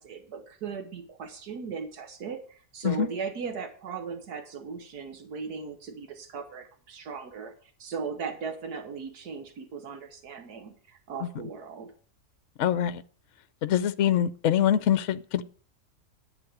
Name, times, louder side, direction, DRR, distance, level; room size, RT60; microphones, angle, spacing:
voice 1, 0.0-11.9, right 5 dB, 90° right, 5 dB, 1.7 m, -38 dB
voice 2, 12.6-13.0 13.6-15.4, left 10 dB, 60° left, 13 dB, 0.9 m, -24 dB
10.5 x 8.5 x 4.9 m, 0.42 s
omnidirectional pair, 1.6 m